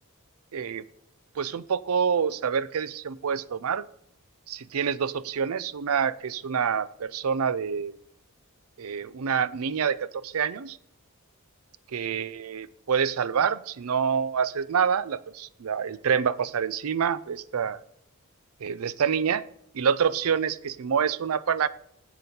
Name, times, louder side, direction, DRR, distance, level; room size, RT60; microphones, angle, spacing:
voice 1, 0.5-0.8 1.4-3.8 4.5-7.9 8.8-10.8 11.9-17.8 18.6-19.4 19.7-21.7, right 7 dB, 85° right, 17 dB, 0.5 m, -27 dB
8.0 x 6.7 x 5.2 m, 0.73 s
head